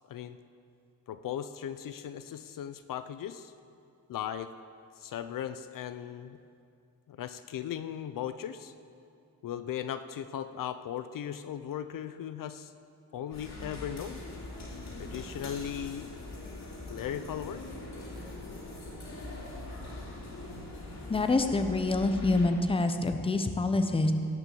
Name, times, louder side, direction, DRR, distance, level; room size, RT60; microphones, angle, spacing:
voice 1, 1.1-3.5 4.1-4.5 5.0-6.4 7.1-8.7 9.4-12.7 13.1-14.2 15.0-16.1 16.9-17.6, left 9 dB, 65° left, 11 dB, 0.5 m, -37 dB
sound 1, 13.3-22.5, left 2 dB, 50° left, 3.1 m, -42 dB
voice 2, 21.1-24.1, left 2 dB, 15° left, 7 dB, 0.8 m, -26 dB
17.5 x 6.1 x 7.7 m, 2.5 s
wide cardioid pair, 140°, 35 cm